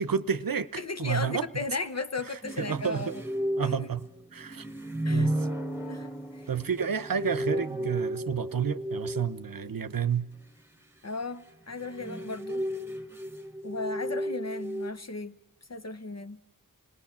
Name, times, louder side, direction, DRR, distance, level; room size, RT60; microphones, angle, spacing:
voice 1, 0.0-1.5 2.3-3.1 3.6-4.0 4.3-4.7 5.1-5.5 6.5-10.3, right 7 dB, 90° right, 0.8 m, -30 dB
voice 2, 0.8-3.2 3.6-3.9 5.0-5.3 5.9-6.4 11.0-12.6 13.6-15.4 15.7-16.4, left 3 dB, 50° left, 0.9 m, -36 dB
sound 1, 2.4-9.7 11.6-14.9, right 1 dB, 5° right, 1.3 m, -33 dB
27.0 x 19.0 x 7.3 m
wide cardioid pair, 55°, 33 cm